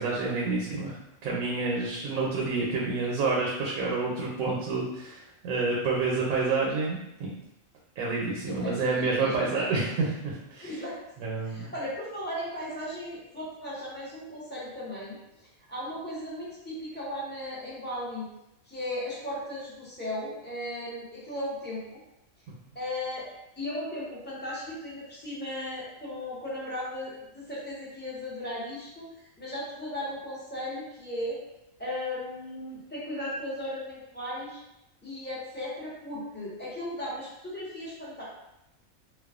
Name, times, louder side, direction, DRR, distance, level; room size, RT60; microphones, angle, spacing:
voice 1, 0.0-7.3 8.0-10.8 11.2-11.7, right 3 dB, 80° right, -3 dB, 1.0 m, -29 dB
voice 2, 8.4-9.6 10.6-11.0 11.4-18.3 18.7-22.0 22.7-23.3 23.6-31.4 31.8-34.6 35.0-38.2, left 1 dB, 10° left, -9 dB, 0.5 m, -36 dB
2.4 x 2.2 x 2.3 m, 0.87 s
omnidirectional pair, 1.4 m